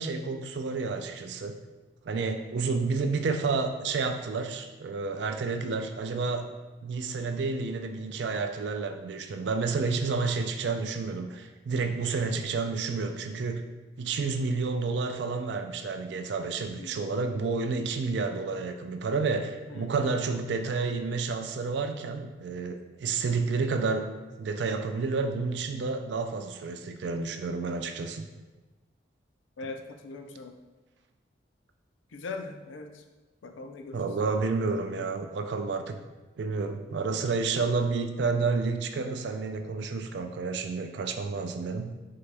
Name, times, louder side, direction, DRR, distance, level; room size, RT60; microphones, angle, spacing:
voice 1, 0.0-1.6 2.0-6.5 6.8-13.6 14.0-24.1 24.4-28.3 33.9-36.0 36.4-41.9, right 4 dB, 65° right, 6 dB, 0.4 m, -30 dB
voice 2, 19.7-20.2 29.6-30.5 32.1-33.0 33.4-34.0, left 3 dB, 80° left, 5 dB, 0.5 m, -40 dB
3.8 x 3.3 x 3.3 m, 1.2 s
head